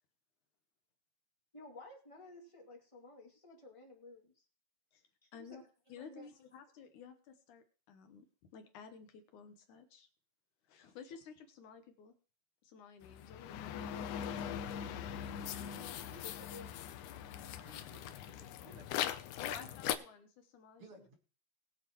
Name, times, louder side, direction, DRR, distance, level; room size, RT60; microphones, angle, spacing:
voice 1, 1.5-4.4 5.2-5.6 6.0-6.3 15.6-16.7, left 2 dB, 10° left, -1 dB, 1.6 m, -54 dB
voice 2, 5.9-8.3 8.5-10.1 10.7-12.1 12.6-14.1 15.6-15.8 19.4-21.1, left 6 dB, 65° left, 6 dB, 2.1 m, -53 dB
sound 1, 13.0-20.0, left 10 dB, 85° left, 1.7 m, -41 dB
voice 3, 17.5-18.9 19.6-19.8 20.8-21.1, right 2 dB, 50° right, 2 dB, 2.0 m, -58 dB
21.0 x 8.0 x 3.0 m, 0.38 s
omnidirectional pair, 4.5 m